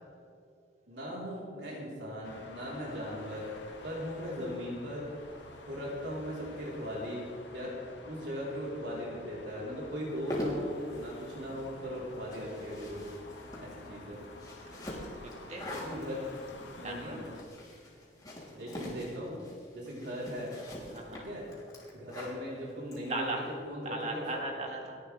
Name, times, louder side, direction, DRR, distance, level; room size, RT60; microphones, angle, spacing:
voice 1, 0.9-3.5 3.8-5.1 5.7-7.2 7.5-7.8 8.0-13.0 13.5-14.2 15.6-17.3 18.5-19.4 19.7-20.5 21.1-21.4 21.9-24.3, equal, 75° right, -5 dB, 4.1 m, -39 dB
sound 1, 2.2-17.4, left 2 dB, 80° left, 1.6 m, -50 dB
sound 2, 10.0-23.5, left 1 dB, 20° left, 3.3 m, -43 dB
voice 2, 15.2-15.7 16.6-17.2 20.9-21.2 23.1-23.4 23.8-25.0, right 2 dB, 40° right, 1 dB, 2.1 m, -37 dB
29.5 x 11.5 x 3.5 m, 2.2 s
head